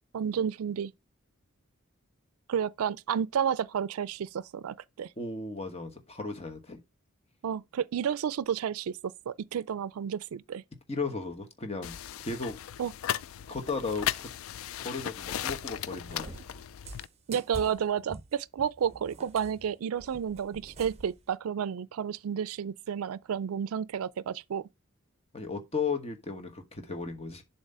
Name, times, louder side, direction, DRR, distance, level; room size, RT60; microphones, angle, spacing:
voice 1, 0.1-0.9 2.5-5.1 7.4-9.0 9.3-10.6 12.8-12.9 17.3-24.7, right 8 dB, 90° right, 0.4 m, -31 dB
voice 2, 5.2-6.8 10.9-12.0 12.2-12.6 13.5-14.3 14.8-16.4 25.3-27.4, left 4 dB, 30° left, 1.1 m, -35 dB
sound 1, 11.8-17.1, left 11 dB, 75° left, 0.3 m, -36 dB
Cat, 16.1-21.2, right 3 dB, 30° right, 0.7 m, -46 dB
7.3 x 2.9 x 5.5 m
head